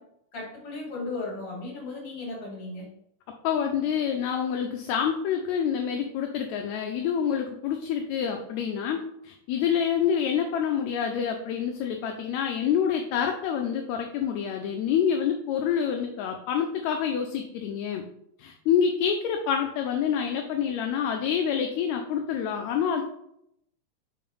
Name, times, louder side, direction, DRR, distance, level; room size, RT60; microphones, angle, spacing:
voice 1, 0.3-2.9, left 3 dB, 50° left, -3 dB, 2.9 m, -35 dB
voice 2, 3.4-18.0 18.4-23.0, left 8 dB, 80° left, 3 dB, 1.8 m, -27 dB
4.6 x 3.9 x 5.3 m, 0.76 s
omnidirectional pair, 3.4 m